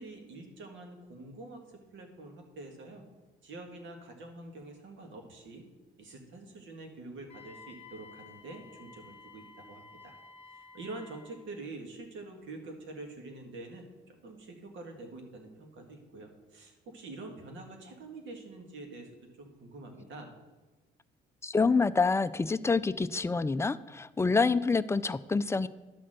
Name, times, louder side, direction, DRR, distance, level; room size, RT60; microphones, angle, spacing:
voice 1, 0.0-3.0 3.4-5.6 6.0-10.1 10.5-19.1 19.4-20.3, right 2 dB, 70° right, 3 dB, 1.9 m, -46 dB
Wind instrument woodwind instrument, 7.3-11.4, left 4 dB, 30° left, 1.4 m, -53 dB
voice 2, 21.4-25.7, left 4 dB, 15° left, 13 dB, 0.4 m, -27 dB
11.0 x 4.2 x 7.7 m, 1.2 s
cardioid pair, 90°, 20 cm